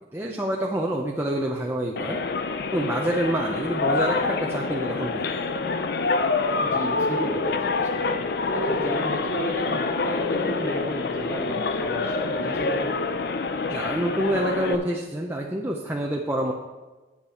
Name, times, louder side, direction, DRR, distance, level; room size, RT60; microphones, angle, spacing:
voice 1, 0.1-2.2 2.7-5.5 13.7-16.5, right 1 dB, 10° right, -1 dB, 0.6 m, -27 dB
sound 1, 2.0-14.8, left 3 dB, 50° left, 0.5 m, -26 dB
voice 2, 6.6-7.5 7.9-8.1 8.5-13.0, equal, 15° left, -3 dB, 2.0 m, -32 dB
9.4 x 8.3 x 4.2 m, 1.2 s
head